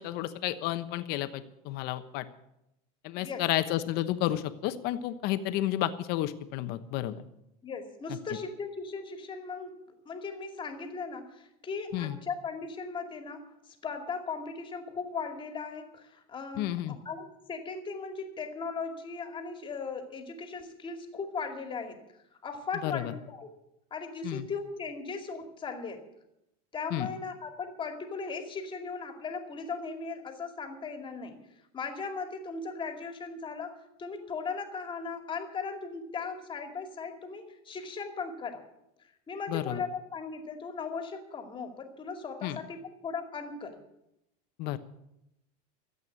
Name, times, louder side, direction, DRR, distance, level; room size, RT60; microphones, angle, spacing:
voice 1, 0.0-2.3 3.0-7.2 11.9-12.2 16.6-17.0 22.8-23.1 24.2-24.5 26.9-27.1 39.5-39.8 42.4-42.6 44.6-44.8, left 14 dB, 55° left, 11 dB, 1.1 m, -31 dB
voice 2, 7.6-9.8 10.0-22.0 22.4-23.5 23.9-26.0 26.7-31.4 31.7-38.6 39.3-43.8, left 4 dB, 25° left, 5 dB, 2.3 m, -38 dB
14.0 x 8.3 x 9.3 m, 0.85 s
supercardioid pair, 125°, 19 cm